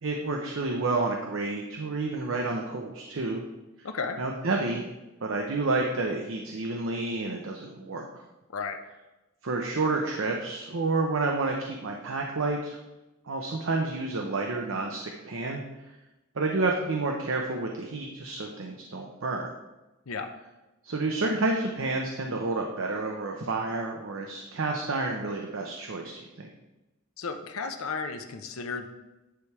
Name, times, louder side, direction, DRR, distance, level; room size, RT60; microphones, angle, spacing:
voice 1, 0.0-3.4 3.8-3.9 4.2-4.8 5.2-8.1 9.4-12.8 13.3-15.6 16.4-19.5 20.8-26.1 26.4-26.5, right 3 dB, 65° right, 1 dB, 0.7 m, -29 dB
voice 2, 3.8-4.2 8.5-8.8 20.1-20.3 27.2-28.9, left 4 dB, 75° left, 6 dB, 0.7 m, -33 dB
9.9 x 3.3 x 4.7 m, 1.0 s
head